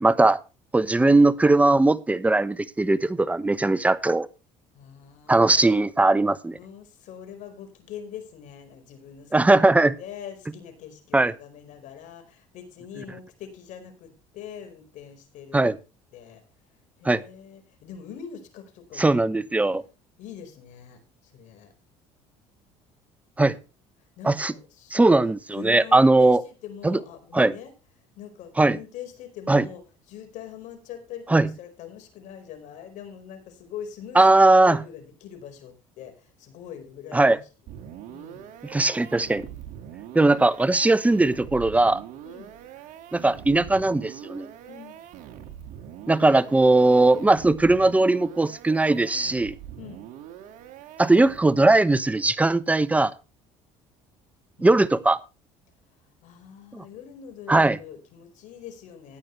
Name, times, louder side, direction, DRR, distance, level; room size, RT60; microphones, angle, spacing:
voice 1, 0.0-0.4 0.7-4.3 5.3-6.6 9.3-10.0 11.1-11.3 15.5-15.8 17.0-17.2 19.0-19.8 23.4-23.6 24.2-24.5 24.9-26.4 26.8-27.0 27.3-27.5 28.6-28.8 29.5-29.7 31.3-31.5 34.1-34.8 37.1-37.4 38.7-39.5 40.1-42.0 43.1-44.5 46.1-49.5 51.0-53.1 54.6-55.2 56.7-56.8 57.5-57.8, right 2 dB, 10° right, 1.0 m, -19 dB
voice 2, 4.7-5.9 6.5-15.8 16.1-16.4 17.0-19.7 20.2-21.7 23.4-23.6 24.2-25.2 25.5-27.7 28.2-29.8 30.1-37.4 37.7-37.8 38.1-38.5 42.2-42.5 44.7-45.0 49.8-50.1 54.6-54.7 56.2-59.2, left 9 dB, 65° left, 4.7 m, -43 dB
sound 1, 37.7-51.7, right 10 dB, 70° right, 2.1 m, -43 dB
15.5 x 9.8 x 3.3 m
supercardioid pair, 90°, 14 cm